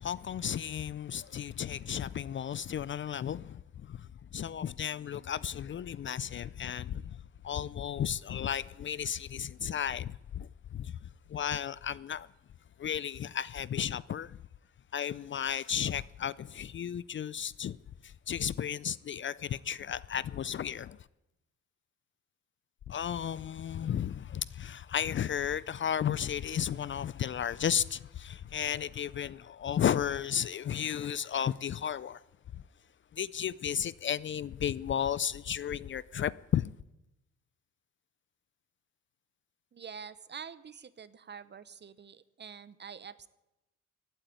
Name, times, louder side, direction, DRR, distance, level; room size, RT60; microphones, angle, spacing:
voice 1, 0.0-3.6 3.9-4.0 4.3-7.2 7.4-10.9 11.3-12.3 12.8-14.4 14.9-17.8 18.0-21.0 22.9-32.2 33.2-36.7, left 9 dB, 40° left, 0.4 m, -33 dB
voice 2, 39.7-43.3, right 6 dB, 35° right, 0.9 m, -46 dB
15.5 x 9.0 x 9.1 m
cardioid pair, 90°, 30 cm